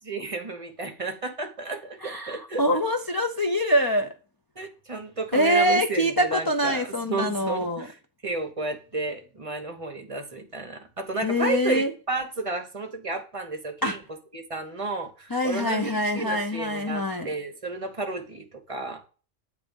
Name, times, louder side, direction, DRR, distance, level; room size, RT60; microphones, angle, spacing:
voice 1, 0.1-2.6 4.6-7.9 8.2-14.0 14.3-19.0, right 3 dB, 30° right, 0.9 m, -32 dB
voice 2, 2.0-4.1 5.3-7.9 11.2-11.9 13.8-14.0 15.3-17.3, equal, 35° left, 0.3 m, -24 dB
8.4 x 3.3 x 5.2 m
omnidirectional pair, 1.3 m